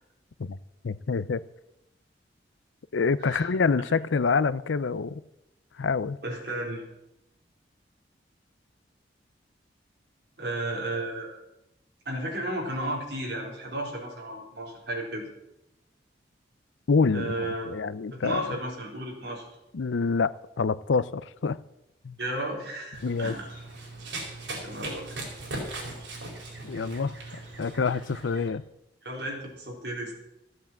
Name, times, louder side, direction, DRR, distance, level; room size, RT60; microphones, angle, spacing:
voice 1, 0.8-1.4 2.9-5.2 5.8-6.2 16.9-18.5 19.7-20.3 20.6-21.6 22.0-22.2 23.0-23.3 26.6-27.1 27.6-28.6, left 4 dB, 85° left, 0.5 m, -26 dB
voice 2, 6.2-6.9 10.4-11.3 12.1-15.3 17.1-17.7 18.1-19.5 22.2-23.5 24.5-25.2 27.2-27.4 29.0-30.1, right 1 dB, 60° right, 4.1 m, -33 dB
Run, 22.9-28.5, right 2 dB, 85° right, 4.5 m, -39 dB
14.5 x 8.2 x 7.4 m
head